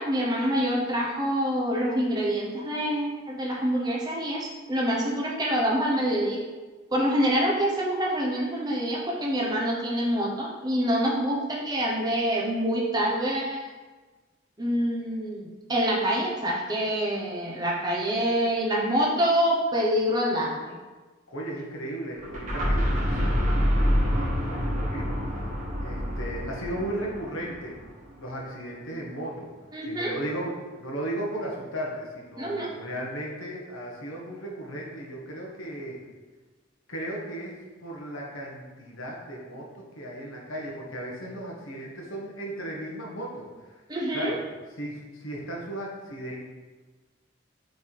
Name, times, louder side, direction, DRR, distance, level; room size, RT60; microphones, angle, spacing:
voice 1, 0.0-6.4 6.9-13.7 14.6-20.6 29.7-30.1 32.4-32.7 43.9-44.3, equal, 20° right, -3 dB, 1.0 m, -26 dB
voice 2, 21.3-25.5 25.8-27.8 28.2-29.5 29.8-36.0 36.9-37.5 37.8-43.8 44.1-44.4 44.8-46.4, right 1 dB, 90° left, -2 dB, 1.4 m, -36 dB
sound 1, 22.2-28.0, equal, 40° right, 1.6 m, -27 dB
6.4 x 3.5 x 4.7 m, 1.3 s
head